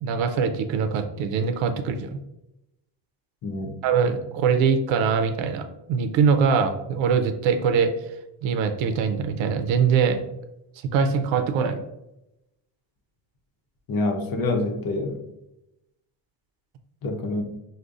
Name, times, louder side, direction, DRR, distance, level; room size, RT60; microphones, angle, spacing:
voice 1, 0.0-2.2 3.8-7.9 8.4-10.2 10.9-11.8, right 6 dB, 85° right, 8 dB, 0.6 m, -22 dB
voice 2, 3.4-3.8 13.9-15.2 17.0-17.4, left 2 dB, 50° left, 5 dB, 0.7 m, -26 dB
5.1 x 2.1 x 2.4 m, 0.90 s
cardioid pair, 120°, 45 cm